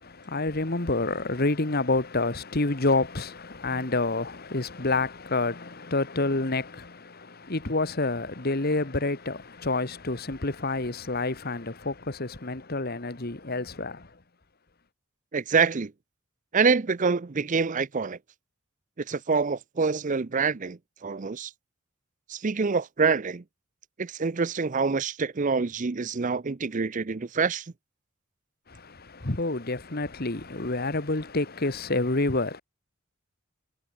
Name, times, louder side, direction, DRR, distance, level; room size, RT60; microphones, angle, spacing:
voice 1, 0.0-14.1 28.7-32.6, left 2 dB, 45° left, 1.7 m, -28 dB
voice 2, 15.3-15.9 16.5-18.2 19.1-21.5 22.3-23.4 24.0-27.6, right 5 dB, 35° right, 0.6 m, -26 dB
head